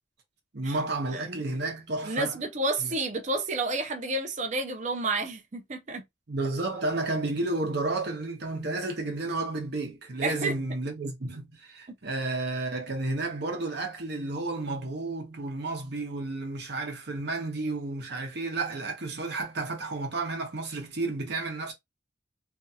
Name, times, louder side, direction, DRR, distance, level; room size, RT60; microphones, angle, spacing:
voice 1, 0.5-2.3 2.8-2.9 6.3-21.7, right 2 dB, 60° right, 0.8 m, -32 dB
voice 2, 1.1-1.4 2.0-6.0 10.2-10.5, right 2 dB, 40° right, 0.5 m, -30 dB
2.6 x 2.3 x 2.7 m
head